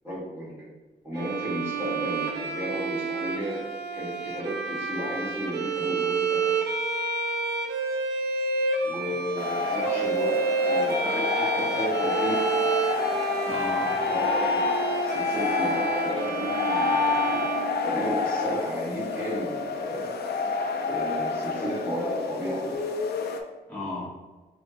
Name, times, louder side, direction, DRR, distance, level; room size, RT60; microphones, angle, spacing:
voice 1, 0.0-0.5 1.0-6.5 8.8-11.1 11.4-12.7 14.1-14.7 15.0-17.5 17.8-20.2 20.8-22.8, equal, 15° right, -8 dB, 1.5 m, -33 dB
Bowed string instrument, 1.1-18.4, right 4 dB, 80° right, 0.5 m, -29 dB
sound 1, 9.4-23.4, left 4 dB, 75° left, 0.4 m, -28 dB
voice 2, 11.0-12.3 13.4-14.0 23.7-24.1, left 2 dB, 10° left, -11 dB, 1.1 m, -36 dB
3.7 x 3.3 x 2.9 m, 1.2 s
wide cardioid pair, 155°, 17 cm